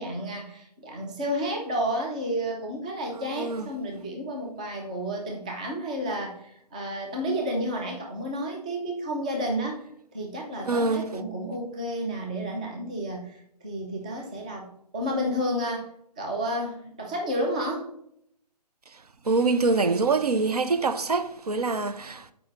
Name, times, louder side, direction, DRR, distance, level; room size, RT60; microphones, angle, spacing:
voice 1, 0.0-9.8 10.1-15.9 16.2-17.9, equal, 10° right, 0.4 m, -31 dB
voice 2, 3.1-3.7 10.7-11.1 18.9-22.3, right 3 dB, 65° right, 0.6 m, -25 dB
7.0 x 4.8 x 3.1 m
figure-of-eight pair, 145°, 21 cm